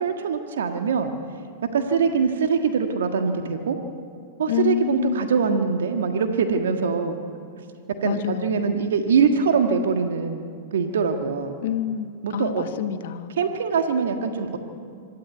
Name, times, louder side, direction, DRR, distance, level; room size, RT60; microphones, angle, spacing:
voice 1, 0.0-1.1 1.7-3.8 4.4-7.2 8.0-10.5 10.7-11.5 12.2-12.6 13.4-14.6, right 5 dB, 70° right, 6 dB, 1.6 m, -23 dB
voice 2, 4.5-5.2 8.0-8.7 11.6-13.3, left 10 dB, 60° left, 9 dB, 1.3 m, -27 dB
24.5 x 12.5 x 9.3 m, 2.3 s
figure-of-eight pair, 100°, 0 cm